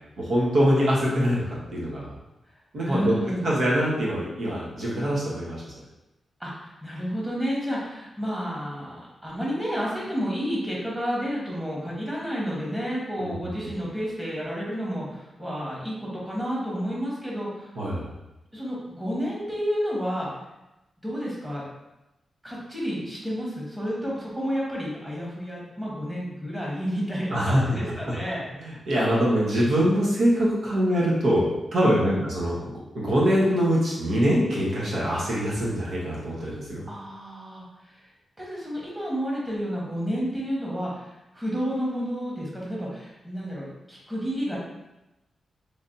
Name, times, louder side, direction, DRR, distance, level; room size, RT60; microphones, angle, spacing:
voice 1, 0.2-1.4 1.7-2.1 2.7-3.1 3.4-5.7 13.2-13.3 17.8-18.1 27.3-27.8 28.6-36.9, equal, 75° right, -6 dB, 1.0 m, -23 dB
voice 2, 2.8-3.5 6.4-17.7 18.5-20.3 21.0-21.7 22.4-28.4 31.8-32.2 36.9-38.0 38.4-44.6, equal, 10° right, -5 dB, 1.2 m, -30 dB
3.3 x 2.8 x 2.7 m, 0.97 s
cardioid pair, 85°, 0 cm